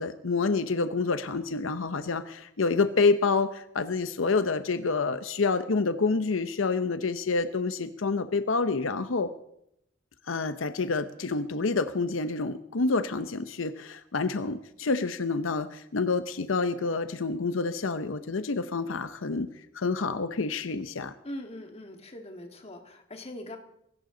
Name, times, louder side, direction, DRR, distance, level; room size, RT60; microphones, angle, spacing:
voice 1, 0.0-9.3 10.3-19.5 19.7-21.1, left 4 dB, 85° left, 11 dB, 0.7 m, -28 dB
voice 2, 21.2-23.6, left 1 dB, 35° left, 4 dB, 2.0 m, -41 dB
19.0 x 17.0 x 3.9 m, 0.78 s
head